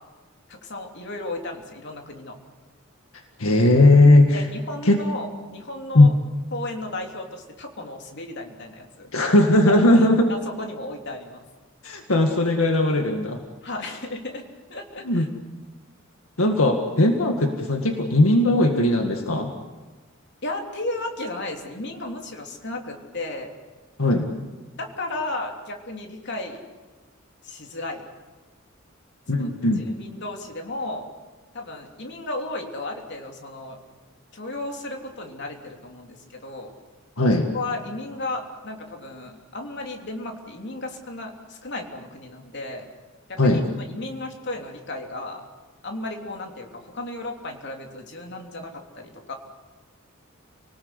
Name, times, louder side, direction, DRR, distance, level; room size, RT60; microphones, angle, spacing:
voice 1, 0.5-2.4 4.3-6.1 6.5-9.3 9.7-11.4 13.6-14.4 14.7-15.3 20.4-23.5 24.8-26.6 27.4-28.0 29.3-29.5 29.8-31.0 31.5-33.8 34.3-36.7 37.5-42.9 43.3-45.4 45.8-49.3, left 2 dB, 55° left, 2 dB, 3.4 m, -34 dB
voice 2, 3.4-4.4 4.9-5.0 5.9-6.1 9.1-10.3 11.8-13.4 15.0-15.3 16.4-19.5 24.0-24.3 29.3-29.8 37.2-37.5 43.4-43.6, left 1 dB, 85° left, 4 dB, 1.9 m, -18 dB
29.0 x 19.5 x 8.2 m, 1.3 s
head